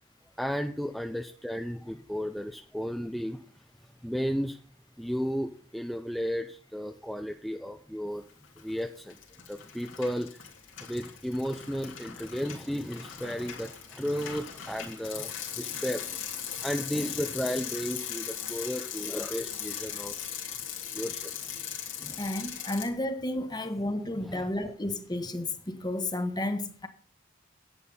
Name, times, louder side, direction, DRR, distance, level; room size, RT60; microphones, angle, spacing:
voice 1, 0.4-3.4 4.0-4.6 5.0-8.2 8.6-9.2 9.5-10.4 10.8-20.2 20.9-21.5 22.0-22.2 24.2-24.5, equal, ahead, 0.6 m, -34 dB
Bicycle, 8.4-8.8 9.1-22.9, left 9 dB, 85° left, 3.2 m, -39 dB
voice 2, 22.2-26.9, left 1 dB, 20° left, 1.4 m, -32 dB
11.0 x 9.1 x 5.5 m
head